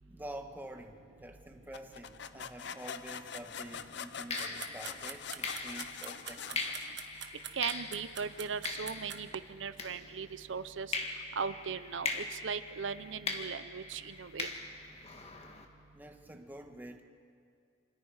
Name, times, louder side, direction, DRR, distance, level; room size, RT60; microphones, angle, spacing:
voice 1, 0.0-6.6 15.2-15.3 15.9-17.0, right 1 dB, 10° right, 4 dB, 1.4 m, -48 dB
sound 1, 1.7-7.4, left 7 dB, 65° left, 0.7 m, -44 dB
sound 2, 3.1-3.4 4.3-10.5 10.9-15.6, left 3 dB, 35° left, 1.8 m, -41 dB
sound 3, 4.2-9.2, right 10 dB, 70° right, 1.2 m, -44 dB
voice 2, 7.5-11.0 11.4-14.5, right 6 dB, 90° right, 13 dB, 0.7 m, -38 dB
27.0 x 26.0 x 4.9 m, 2.3 s
head